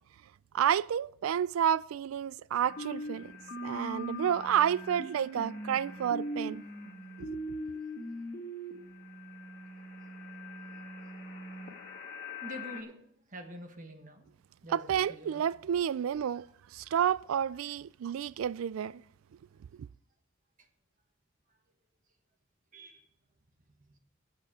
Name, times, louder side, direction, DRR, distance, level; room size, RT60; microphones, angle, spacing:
voice 1, 0.5-3.3 3.6-6.6 7.2-7.4 14.7-16.5 16.7-19.0 19.8-19.9, right 9 dB, 85° right, 0.3 m, -30 dB
sound 1, 2.6-12.8, equal, 45° left, 2.0 m, -41 dB
voice 2, 12.4-14.3 14.6-15.4 20.6-20.7 22.7-23.1 23.8-24.0, equal, 40° right, 1.4 m, -46 dB
18.5 x 8.2 x 3.6 m
head